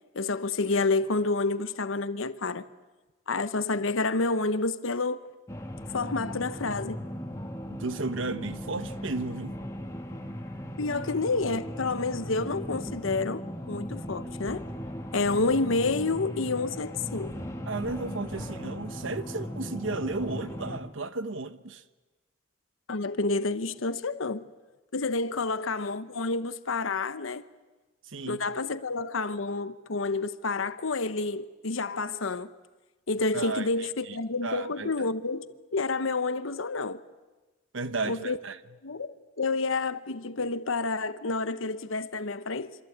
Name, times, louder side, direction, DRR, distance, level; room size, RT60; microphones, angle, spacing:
voice 1, 0.1-2.7 3.3-5.3 5.9-7.0 10.8-13.4 13.7-14.7 15.1-17.3 22.9-24.5 24.9-27.4 28.3-32.5 33.1-37.0 38.0-38.4 38.8-42.8, left 3 dB, 90° left, 1.0 m, -29 dB
sound 1, 5.5-20.8, equal, 15° left, 2.0 m, -37 dB
voice 2, 7.7-9.5 17.7-21.8 28.1-28.4 33.3-34.2 34.4-35.1 37.7-38.6, right 3 dB, 75° right, 1.2 m, -34 dB
26.0 x 25.5 x 8.7 m
head